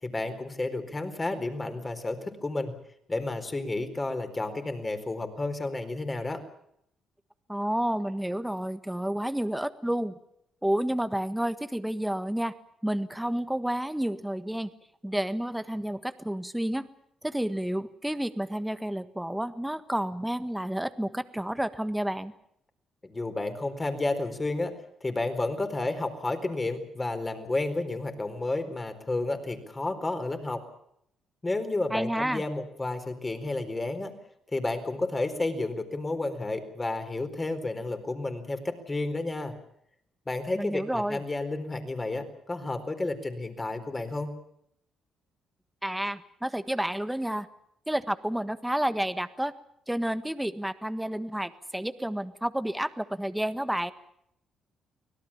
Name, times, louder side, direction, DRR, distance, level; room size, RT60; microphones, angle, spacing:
voice 1, 0.0-2.7 3.1-6.4 23.0-24.7 25.0-30.6 31.4-34.1 34.5-39.5 40.3-44.3, left 2 dB, 20° left, 7 dB, 4.3 m, -31 dB
voice 2, 7.5-10.1 10.6-12.6 12.8-14.7 15.0-16.9 17.2-22.3 31.9-32.4 40.5-41.2 45.8-47.5 47.9-49.5 49.9-53.9, right 1 dB, 5° right, 11 dB, 1.5 m, -30 dB
24.5 x 18.0 x 7.3 m, 0.73 s
cardioid pair, 90°, 0 cm